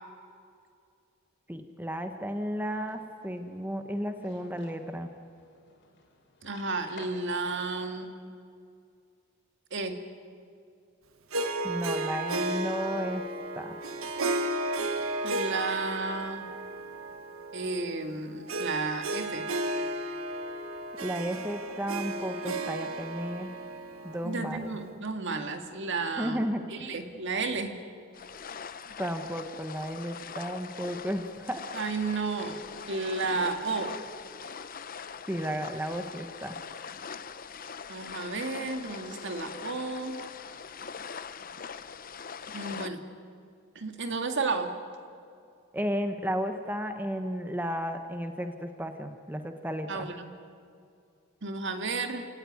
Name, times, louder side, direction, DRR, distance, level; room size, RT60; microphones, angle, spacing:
voice 1, 1.5-5.1 11.6-13.2 13.5-13.8 21.0-23.5 24.0-24.7 26.2-26.9 29.0-31.7 35.3-36.5 45.7-50.1, equal, 10° right, 6 dB, 1.2 m, -33 dB
sound 1, 2.9-8.1, left 3 dB, 60° left, 4.6 m, -55 dB
voice 2, 6.4-8.2 9.7-10.0 15.2-16.5 17.5-19.4 24.2-27.8 31.7-32.6 32.9-34.0 37.9-40.2 42.5-43.0 43.8-44.8 49.9-50.3 51.4-52.3, right 3 dB, 60° right, 6 dB, 2.2 m, -32 dB
Harp, 11.3-24.9, right 2 dB, 75° right, 1.6 m, -34 dB
sound 2, 28.1-42.9, left 6 dB, 40° left, 0.8 m, -42 dB
28.5 x 18.0 x 9.7 m, 2.4 s
head